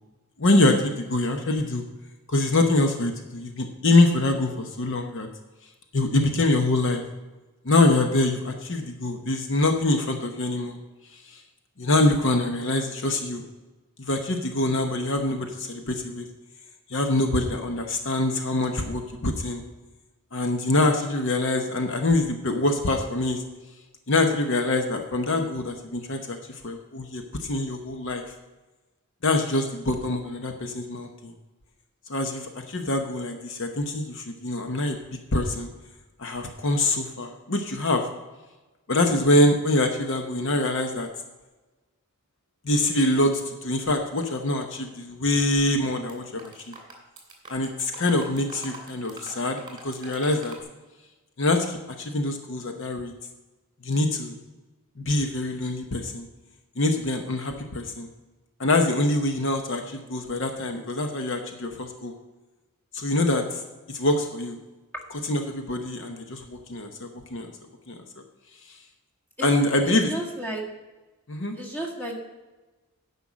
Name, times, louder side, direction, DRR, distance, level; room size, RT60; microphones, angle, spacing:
voice 1, 0.4-1.8 2.3-5.3 5.9-7.0 7.6-10.8 11.1-11.4 11.8-13.4 14.0-16.2 16.9-19.6 20.3-23.4 24.1-28.2 29.2-31.3 32.1-35.0 35.3-35.7 36.2-38.0 38.9-41.1 42.6-46.7 47.5-50.5 51.4-53.1 53.8-54.4 55.0-56.3 56.8-58.1 58.6-62.1 62.9-63.6 63.9-64.6 65.1-67.5 67.9-68.0 68.7-68.8 69.4-70.1 71.3-71.6, left 2 dB, 60° left, 5 dB, 0.9 m, -24 dB
sound 1, 45.7-46.1 46.4-50.6, right 2 dB, 20° right, 2.5 m, -44 dB
voice 2, 69.9-70.6 71.6-72.1, right 1 dB, 10° left, -1 dB, 1.7 m, -33 dB
10.0 x 5.6 x 7.3 m, 1.2 s
head